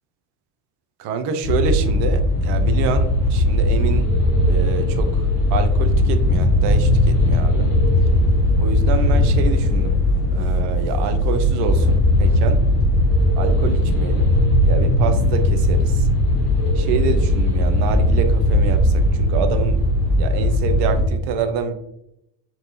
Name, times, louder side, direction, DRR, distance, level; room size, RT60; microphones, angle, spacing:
voice 1, 1.0-4.1 4.4-5.1 5.5-7.7 8.6-10.0 10.3-12.6 13.4-14.3 14.6-15.9 16.8-19.8 20.2-21.7, right 6 dB, 55° right, 8 dB, 0.5 m, -27 dB
sound 1, 1.4-21.0, left 1 dB, 80° left, 0.7 m, -18 dB
3.2 x 2.2 x 2.7 m, 0.80 s
figure-of-eight pair, 45°, 49 cm